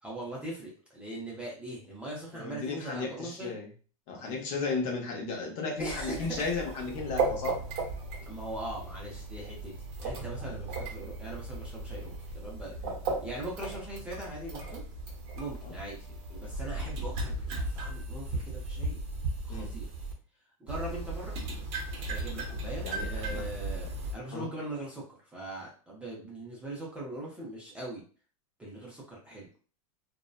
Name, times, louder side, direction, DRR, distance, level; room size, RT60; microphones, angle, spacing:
voice 1, 0.0-3.5 4.2-4.3 5.8-6.5 8.3-9.7 10.0-12.8 13.2-14.8 15.3-19.0 19.4-19.9 20.6-21.4 22.1-25.0 25.3-28.0 28.6-29.5, right 1 dB, 5° right, -5 dB, 0.6 m, -41 dB
voice 2, 2.3-3.7 4.1-7.6 12.8-12.9 15.6-15.7 19.5-19.7 22.8-23.4 24.3-24.5, left 4 dB, 40° left, 1 dB, 0.7 m, -34 dB
sound 1, 5.8-20.1 20.7-24.1, right 2 dB, 45° right, 0.7 m, -36 dB
2.6 x 2.1 x 2.3 m, 0.39 s
supercardioid pair, 145°, 19 cm